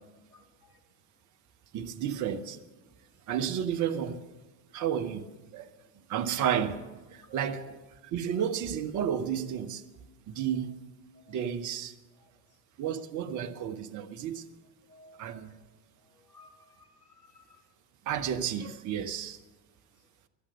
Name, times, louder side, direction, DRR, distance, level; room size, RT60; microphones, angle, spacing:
voice 1, 1.7-2.6 3.3-4.2 4.7-5.3 5.5-5.7 6.1-7.8 8.1-9.8 10.3-10.8 11.3-11.9 12.8-14.4 15.2-15.6 18.1-19.4, right 8 dB, 40° right, 1.1 m, -32 dB
voice 2, 7.3-7.8 8.3-8.4 11.3-11.4 14.9-15.5 16.3-16.9 17.2-17.6, equal, 75° left, 1.8 m, -55 dB
16.5 x 11.5 x 6.5 m
figure-of-eight pair, 75°, 48 cm